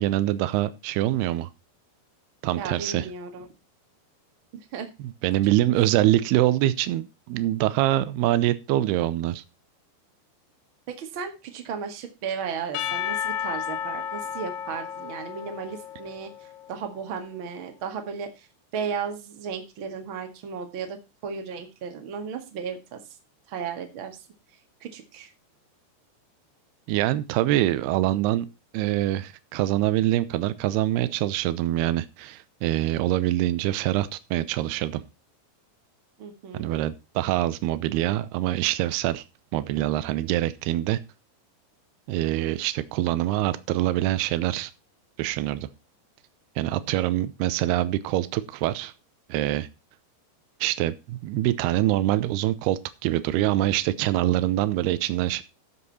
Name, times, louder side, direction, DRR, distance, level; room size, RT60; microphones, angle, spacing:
voice 1, 0.0-1.5 2.4-3.1 5.0-9.4 26.9-28.5 28.7-35.0 36.5-39.2 39.5-41.0 42.1-44.7 45.2-45.7 46.6-48.9 49.3-49.7 50.6-55.4, right 14 dB, 75° right, 14 dB, 2.6 m, -24 dB
voice 2, 2.5-3.5 4.5-4.9 10.9-16.3 16.7-18.5 18.7-23.0 23.5-24.2 24.8-25.3 36.2-36.7, right 6 dB, 45° right, 5 dB, 1.7 m, -35 dB
Percussion / Church bell, 12.7-16.9, left 9 dB, 90° left, 3.5 m, -33 dB
12.5 x 7.6 x 4.1 m, 0.27 s
omnidirectional pair, 5.1 m